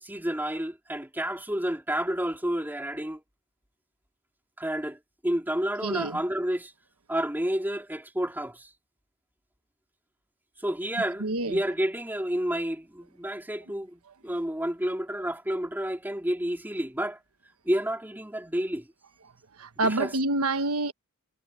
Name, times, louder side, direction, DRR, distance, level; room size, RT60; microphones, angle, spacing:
voice 1, 0.0-3.2 4.6-6.7 7.1-8.7 10.6-17.2 17.6-18.9 19.8-20.1, right 1 dB, 10° right, 2.8 m, -30 dB
voice 2, 5.8-6.2 11.2-11.6 19.6-20.9, right 2 dB, 75° right, 1.2 m, -27 dB
head